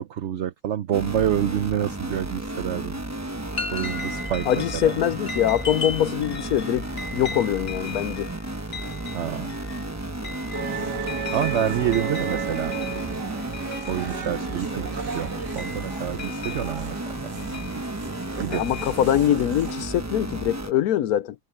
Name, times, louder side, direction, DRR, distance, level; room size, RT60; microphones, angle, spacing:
voice 1, 0.0-3.0 3.7-4.5 4.7-4.9 9.1-9.5 11.3-12.7 13.9-17.1 18.4-18.6, right 10 dB, 60° right, 0.8 m, -27 dB
sound 1, 0.9-20.7, right 1 dB, 15° right, 0.7 m, -33 dB
sound 2, 3.5-19.2, left 4 dB, 40° left, 1.7 m, -38 dB
voice 2, 4.5-6.9 7.1-8.3 18.5-21.3, left 11 dB, 70° left, 1.1 m, -23 dB
sound 3, 10.5-19.7, right 6 dB, 85° right, 2.8 m, -34 dB
omnidirectional pair, 1.7 m